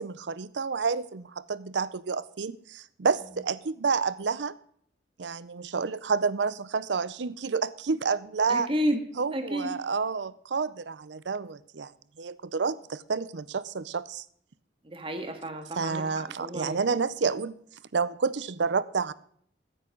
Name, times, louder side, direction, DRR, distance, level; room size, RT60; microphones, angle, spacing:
voice 1, 0.0-4.5 5.2-8.7 9.2-11.9 12.2-14.2 15.8-17.5 17.9-19.1, right 5 dB, 80° right, 17 dB, 0.6 m, -29 dB
voice 2, 8.5-9.0 9.3-9.7 14.9-16.8, equal, 30° right, 6 dB, 1.8 m, -31 dB
14.5 x 10.0 x 3.9 m, 0.63 s
head